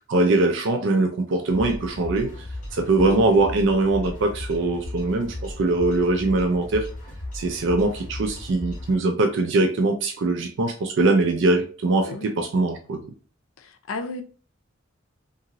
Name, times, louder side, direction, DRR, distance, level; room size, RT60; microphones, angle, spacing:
voice 1, 0.1-2.3 2.7-6.9 7.3-13.0, right 2 dB, 65° right, 0.4 m, -22 dB
sound 1, 1.5-9.0, left 1 dB, 40° left, 0.7 m, -36 dB
voice 2, 3.0-3.4 12.0-12.3 13.9-14.2, left 3 dB, 80° left, 0.4 m, -32 dB
2.8 x 2.5 x 2.7 m
head